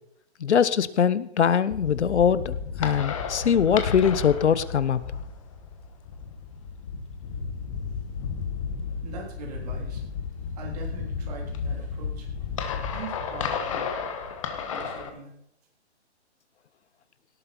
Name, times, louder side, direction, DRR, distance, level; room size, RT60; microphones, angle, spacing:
voice 1, 0.4-5.0, left 7 dB, 80° left, 16 dB, 1.0 m, -22 dB
sound 1, 1.7-15.1, left 6 dB, 30° left, 1.3 m, -33 dB
voice 2, 8.9-10.0 10.6-12.5 12.9-13.9 14.7-15.3, right 4 dB, 35° right, -1 dB, 3.5 m, -42 dB
18.0 x 8.4 x 4.4 m, 0.73 s
hypercardioid pair, 170°, 34 cm